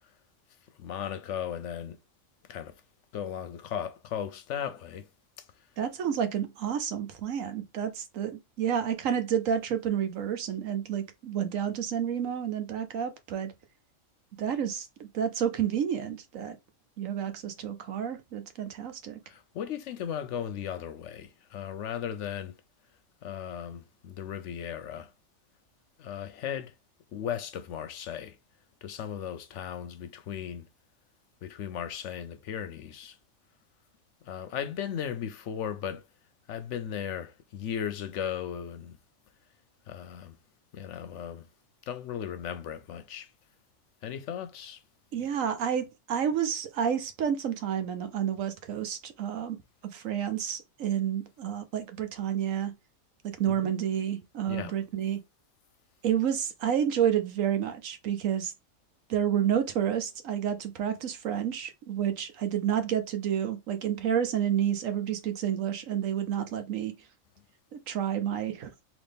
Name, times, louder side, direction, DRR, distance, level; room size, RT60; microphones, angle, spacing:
voice 1, 0.8-2.0 2.5-2.7 3.1-5.1 19.3-22.5 23.2-25.1 26.0-26.7 27.1-28.4 28.8-30.6 31.4-33.2 34.3-36.0 36.5-39.0 39.9-40.4 40.7-41.4 41.9-43.3 44.0-44.8 53.5-53.7 54.5-54.7, left 9 dB, 70° left, 0.9 m, -36 dB
voice 2, 5.8-13.5 14.4-16.6 17.0-19.2 45.1-49.6 49.9-52.7 53.2-55.2 56.0-58.5 59.1-66.9 67.7-68.7, right 9 dB, 75° right, 1.2 m, -30 dB
4.1 x 2.9 x 3.4 m
omnidirectional pair, 1.4 m